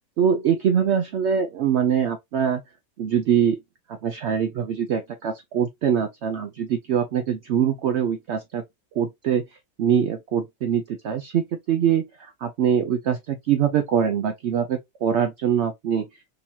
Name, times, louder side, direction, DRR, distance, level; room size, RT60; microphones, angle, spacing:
voice 1, 0.2-2.6 3.0-3.6 3.9-8.6 8.9-9.4 9.8-16.1, right 8 dB, 70° right, 0.7 m, -23 dB
3.8 x 2.8 x 2.7 m
omnidirectional pair, 1.6 m